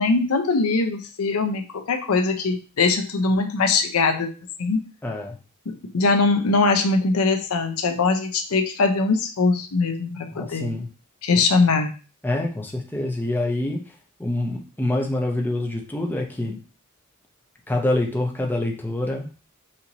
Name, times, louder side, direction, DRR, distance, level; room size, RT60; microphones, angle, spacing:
voice 1, 0.0-4.3 4.6-4.8 5.7-10.7 11.2-11.9, left 3 dB, 90° left, 5 dB, 0.6 m, -21 dB
voice 2, 5.0-5.4 10.3-10.9 11.3-11.4 12.2-16.6 17.7-19.3, left 1 dB, 10° left, 0 dB, 0.6 m, -26 dB
4.3 x 2.6 x 2.8 m, 0.35 s
head